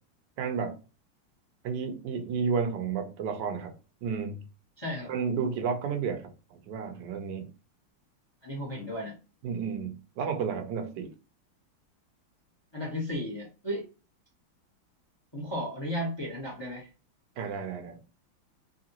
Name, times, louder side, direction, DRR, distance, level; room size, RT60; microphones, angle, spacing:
voice 1, 0.4-0.8 1.6-3.7 4.0-4.4 5.1-7.5 9.4-11.1 17.4-18.0, right 6 dB, 65° right, 1.2 m, -32 dB
voice 2, 4.8-5.1 8.4-9.1 12.7-13.9 15.3-16.9, equal, 15° left, 0.9 m, -34 dB
3.8 x 3.3 x 2.9 m
omnidirectional pair, 2.4 m